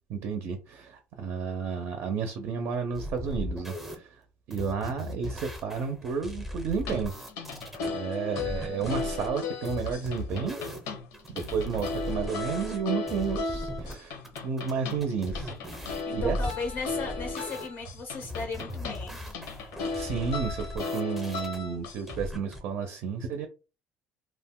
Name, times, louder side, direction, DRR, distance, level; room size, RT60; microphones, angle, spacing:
voice 1, 0.1-4.2 4.5-7.1 7.9-10.6 11.3-16.4 19.9-23.5, right 6 dB, 55° right, 0.5 m, -32 dB
sound 1, 2.9-4.0 4.5-7.9 8.4-9.3 9.6-10.9 11.1-12.8 13.1-13.9 14.2-17.7 18.2-21.6 22.1-22.6, left 1 dB, 5° right, 0.6 m, -38 dB
sound 2, 6.8-22.2, left 4 dB, 90° left, 0.7 m, -36 dB
voice 2, 8.2-9.1 16.1-19.2, left 4 dB, 40° left, 0.4 m, -37 dB
2.4 x 2.1 x 3.5 m
cardioid pair, 165°, 5 cm